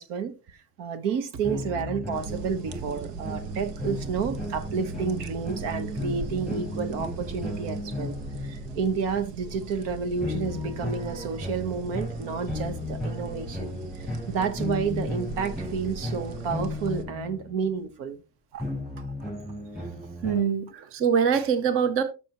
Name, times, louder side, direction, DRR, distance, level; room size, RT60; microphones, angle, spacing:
voice 1, 0.0-8.1 8.4-18.2 18.5-18.7 19.0-19.1, right 6 dB, 65° right, 1.4 m, -30 dB
sound 1, 1.4-9.1 10.2-17.7 18.6-20.4, left 1 dB, ahead, 6.1 m, -35 dB
sound 2, 2.1-17.0, right 4 dB, 80° right, 1.5 m, -39 dB
voice 2, 20.2-22.0, right 7 dB, 30° right, 0.7 m, -24 dB
13.0 x 6.3 x 3.0 m
cardioid pair, 155°, 44 cm